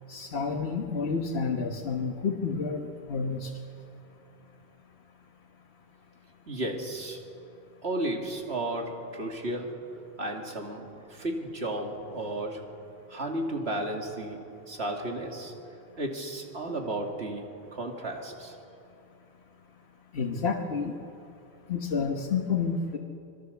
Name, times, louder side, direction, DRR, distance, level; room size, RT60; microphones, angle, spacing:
voice 1, 0.1-3.5 20.1-20.9 21.7-23.0, left 5 dB, 80° left, 2 dB, 1.5 m, -30 dB
voice 2, 6.5-7.2 7.8-9.8 10.2-12.6 13.1-14.4 14.7-15.5 16.0-18.6, right 1 dB, 90° right, 2 dB, 2.9 m, -33 dB
26.5 x 21.5 x 7.0 m, 2.6 s
omnidirectional pair, 1.1 m